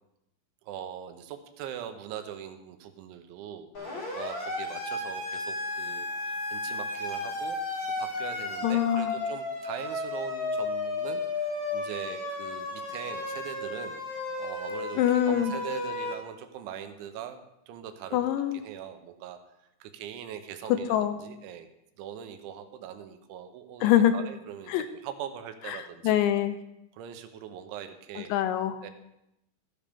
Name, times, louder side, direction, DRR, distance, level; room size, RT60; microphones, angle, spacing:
voice 1, 0.6-7.6 8.0-17.4 17.7-18.3 18.6-19.4 19.8-21.7 22.0-26.2 26.9-28.3 28.8-28.9, right 9 dB, 80° right, 8 dB, 3.1 m, -41 dB
Siren, 3.7-16.1, left 2 dB, 30° left, 4.2 m, -33 dB
voice 2, 8.6-9.1 15.0-15.5 18.1-18.6 20.9-21.2 23.8-24.1 24.7-24.9 25.7-26.6 28.3-28.8, left 11 dB, 80° left, 10 dB, 2.8 m, -24 dB
14.0 x 12.0 x 3.6 m, 0.84 s
omnidirectional pair, 5.5 m